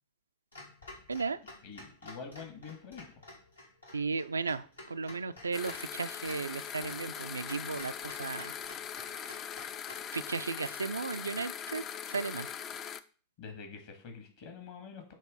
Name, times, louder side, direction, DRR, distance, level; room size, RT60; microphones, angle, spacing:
Clock, 0.5-10.1, left 2 dB, 80° left, 1.7 m, -51 dB
voice 1, 1.6-3.2 12.7-12.8 13.4-15.1, left 5 dB, 50° left, 5 dB, 1.8 m, -46 dB
voice 2, 3.9-8.5 10.1-12.5, right 4 dB, 75° right, 12 dB, 0.3 m, -35 dB
sound 1, 5.5-13.0, left 8 dB, 30° left, 0.4 m, -41 dB
7.6 x 3.1 x 5.1 m, 0.40 s
figure-of-eight pair, 90°, 0 cm